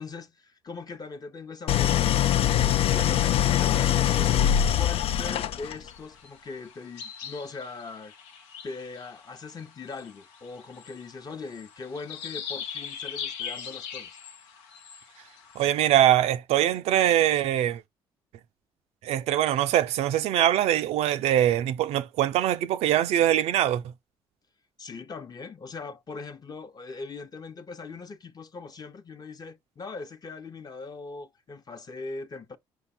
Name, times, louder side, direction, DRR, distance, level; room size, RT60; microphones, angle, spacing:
voice 1, 0.0-2.2 2.9-4.4 4.7-8.1 8.6-14.1 24.8-32.6, left 4 dB, 35° left, 0.8 m, -40 dB
Idling, 1.7-5.9, left 11 dB, 60° left, 0.4 m, -23 dB
sound 1, 5.9-15.7, left 8 dB, 85° left, 0.8 m, -41 dB
voice 2, 15.6-17.8 19.0-23.8, right 12 dB, 75° right, 0.5 m, -23 dB
5.2 x 2.2 x 4.2 m
supercardioid pair, 60°, 11 cm